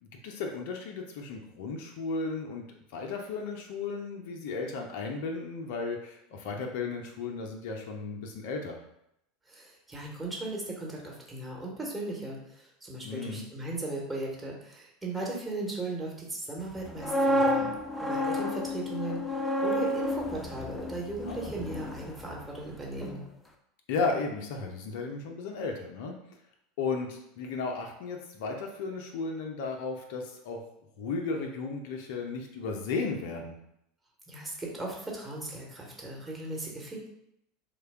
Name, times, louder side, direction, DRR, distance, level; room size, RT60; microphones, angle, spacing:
voice 1, 0.0-2.7 2.9-8.8 13.0-13.5 21.3-21.5 23.9-26.2 26.8-30.6 31.0-33.6, left 4 dB, 65° left, 2 dB, 0.5 m, -34 dB
voice 2, 9.5-17.7 18.1-23.2 34.3-37.1, right 2 dB, 20° right, -3 dB, 1.1 m, -37 dB
sound 1, 16.8-22.7 23.0-23.2, equal, 10° left, 0.5 m, -30 dB
3.2 x 2.2 x 3.4 m, 0.78 s
hypercardioid pair, 85°, 0 cm